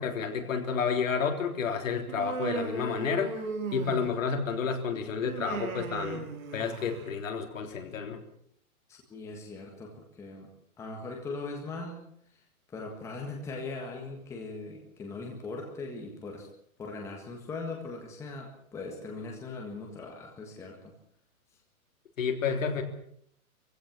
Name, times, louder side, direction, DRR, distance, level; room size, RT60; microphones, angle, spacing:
voice 1, 0.0-3.3 3.7-8.2 22.2-22.8, left 6 dB, 60° left, 4 dB, 3.6 m, -30 dB
Human voice, 2.1-4.3 5.2-7.1, right 4 dB, 65° right, 4.0 m, -37 dB
voice 2, 8.9-10.5 10.8-12.0 12.7-16.5 16.8-20.9, left 3 dB, 5° left, 1 dB, 1.7 m, -40 dB
23.0 x 16.0 x 7.2 m, 0.69 s
hypercardioid pair, 175°, 43 cm